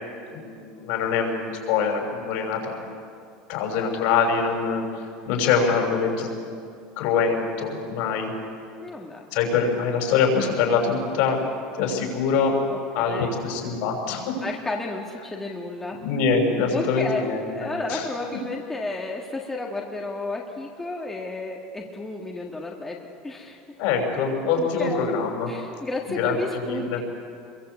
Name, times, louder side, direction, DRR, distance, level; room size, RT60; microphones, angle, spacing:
voice 1, 0.3-2.8 3.5-4.8 5.3-6.3 7.0-8.3 9.3-11.4 11.8-12.6 12.9-14.4 16.0-17.5 17.9-18.0 23.8-25.5 26.1-27.0, left 5 dB, 65° left, 2 dB, 6.2 m, -24 dB
voice 2, 8.8-9.3 12.7-13.4 14.4-16.0 16.7-17.3 17.5-23.6 24.6-25.1 25.5-27.0, left 2 dB, 10° left, -1 dB, 1.8 m, -32 dB
27.0 x 23.0 x 8.3 m, 2.4 s
cardioid pair, 160°, 3 cm